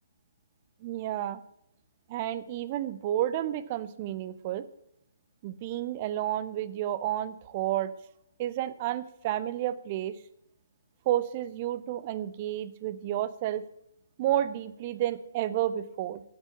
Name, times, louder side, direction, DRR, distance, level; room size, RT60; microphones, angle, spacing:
voice 1, 0.8-1.4 2.1-4.6 5.4-7.9 8.4-10.2 11.1-13.6 14.2-16.2, right 12 dB, 30° right, 15 dB, 0.7 m, -31 dB
9.1 x 8.3 x 8.5 m, 0.78 s
figure-of-eight pair, 130°, 0 cm